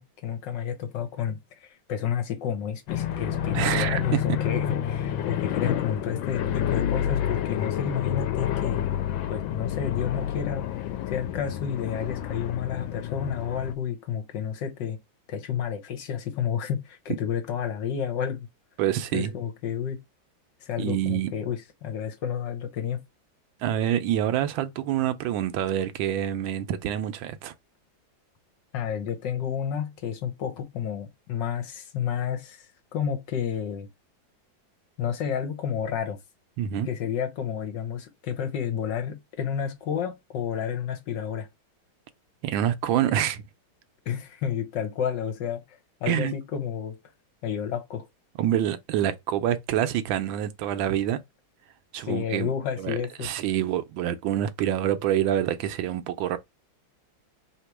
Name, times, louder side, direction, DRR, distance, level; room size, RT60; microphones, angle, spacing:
voice 1, 0.0-8.9 9.3-10.7 11.1-15.0 15.3-18.5 19.1-20.0 20.6-23.0 28.7-32.6 32.9-33.9 35.0-36.2 36.8-41.5 44.1-47.0 47.4-48.1 52.0-53.3, left 8 dB, 70° left, 1.5 m, -30 dB
sound 1, 2.9-13.7, left 10 dB, 85° left, 1.4 m, -29 dB
voice 2, 3.5-4.2 18.8-19.3 20.8-21.3 23.6-27.5 36.6-36.9 42.4-43.4 46.1-46.3 48.4-51.2 51.9-52.5 52.8-56.4, right 11 dB, 85° right, 1.4 m, -26 dB
3.5 x 2.9 x 4.5 m
omnidirectional pair, 2.1 m